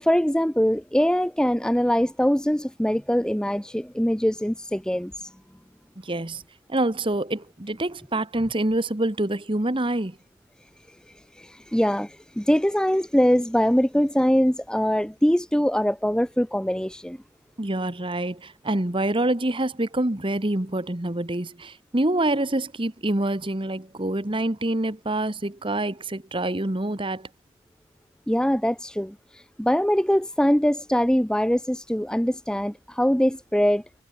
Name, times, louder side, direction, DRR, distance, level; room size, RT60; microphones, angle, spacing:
voice 1, 0.0-5.3 11.4-17.2 28.3-33.8, equal, 5° left, 0.6 m, -23 dB
voice 2, 6.0-6.4 6.7-10.2 17.6-27.3, right 1 dB, 25° right, 1.2 m, -26 dB
head